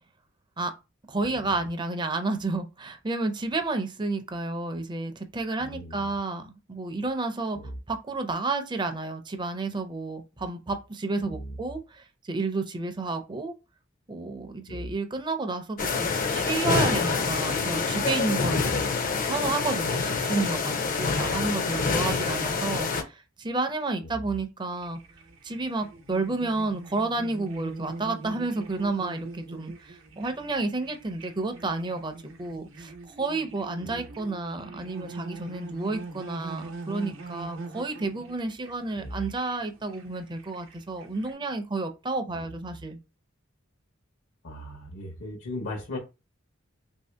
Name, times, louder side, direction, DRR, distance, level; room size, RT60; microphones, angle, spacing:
voice 1, 1.1-7.6 7.9-13.5 14.1-18.8 19.2-25.0 25.4-43.0, right 3 dB, 20° right, 0.5 m, -31 dB
voice 2, 5.6-6.1 7.5-7.7 11.2-11.6 14.7-14.9 18.6-18.8 21.7-22.3 24.0-24.2 33.8-34.0 38.9-39.2 42.3-42.5 44.4-46.0, left 1 dB, 80° left, 1.0 m, -38 dB
sound 1, 15.8-23.0, left 4 dB, 40° left, 0.5 m, -26 dB
sound 2, 24.7-41.3, right 3 dB, 70° right, 0.7 m, -43 dB
3.0 x 2.7 x 3.3 m
head